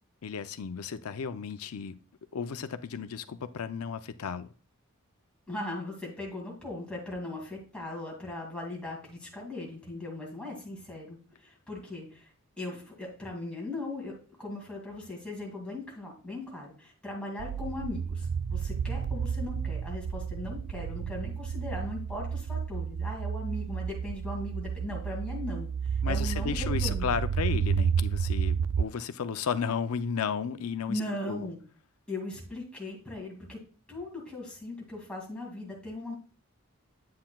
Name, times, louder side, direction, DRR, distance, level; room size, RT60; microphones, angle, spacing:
voice 1, 0.2-1.9 2.3-4.5 26.0-31.0 31.3-31.4, left 6 dB, 90° left, 11 dB, 0.5 m, -33 dB
voice 2, 5.5-12.3 12.6-27.1 30.9-31.6 32.1-33.6 33.9-36.2, left 2 dB, 5° left, -4 dB, 2.3 m, -39 dB
sound 1, 17.4-28.8, right 7 dB, 85° right, 0.4 m, -31 dB
8.6 x 7.7 x 2.3 m, 0.38 s
head